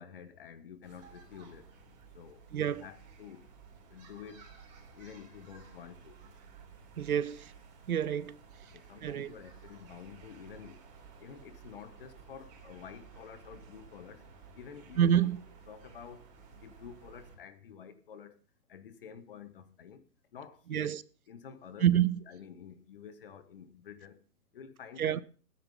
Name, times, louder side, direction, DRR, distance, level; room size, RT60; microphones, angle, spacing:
voice 1, 0.0-1.7 2.1-3.5 3.9-4.5 4.9-6.2 8.7-10.8 11.2-14.3 14.5-15.3 15.7-16.3 16.6-18.4 18.7-20.0 20.3-21.0 21.3-24.2 24.5-25.2, left 7 dB, 35° left, 1.2 m, -49 dB
sound 1, 0.8-17.4, right 5 dB, 25° right, 3.7 m, -55 dB
voice 2, 2.5-2.9 7.0-7.5 7.9-8.4 9.0-9.3 15.0-15.4 20.7-21.0 21.8-22.2 25.0-25.2, right 10 dB, 65° right, 0.8 m, -27 dB
15.0 x 9.7 x 5.4 m
hypercardioid pair, 165°, 47 cm